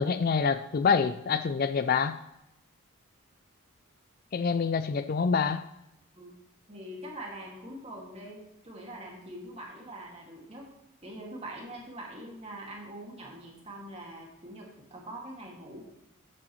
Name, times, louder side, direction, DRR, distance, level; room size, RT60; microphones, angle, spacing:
voice 1, 0.0-2.2 4.3-5.6, left 5 dB, 40° left, 12 dB, 0.3 m, -26 dB
voice 2, 6.7-10.7 11.0-15.8, right 1 dB, 25° right, -1 dB, 2.2 m, -43 dB
12.5 x 8.7 x 3.2 m, 0.83 s
head